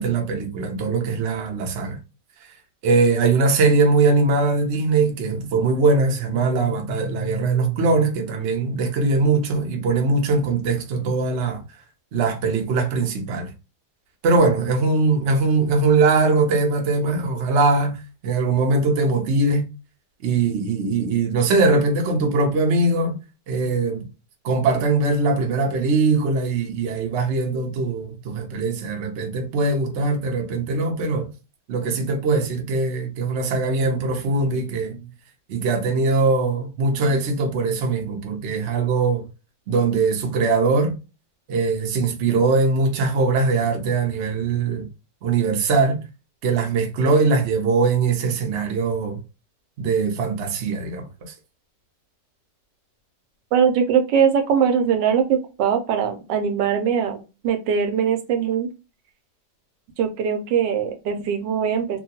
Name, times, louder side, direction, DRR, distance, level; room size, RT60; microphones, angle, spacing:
voice 1, 0.0-2.0 2.8-11.6 12.1-13.5 14.2-19.7 20.2-23.2 23.5-24.0 24.4-31.3 31.7-35.0 35.5-39.2 39.7-40.9 41.5-44.9 45.2-46.0 46.4-49.2 49.8-51.3, right 3 dB, 55° right, 0.7 m, -21 dB
voice 2, 53.5-58.7 60.0-62.0, right 7 dB, 80° right, 1.3 m, -21 dB
2.8 x 2.5 x 2.7 m
omnidirectional pair, 1.9 m